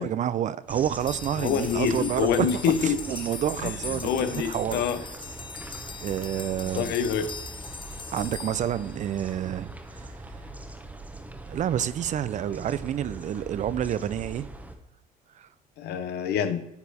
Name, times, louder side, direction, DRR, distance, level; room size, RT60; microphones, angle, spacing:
voice 1, 0.0-4.8 6.0-6.9 8.1-10.4 11.5-14.5 15.3-15.5, right 10 dB, 45° right, 0.4 m, -29 dB
sound 1, 0.7-14.7, right 2 dB, 10° right, 0.9 m, -41 dB
sound 2, 1.0-9.5, left 5 dB, 30° left, 0.6 m, -41 dB
voice 2, 1.4-3.0 3.6-5.0 6.7-7.3 15.8-16.7, left 7 dB, 80° left, 0.9 m, -26 dB
9.5 x 4.5 x 4.1 m
cardioid pair, 110°, 17 cm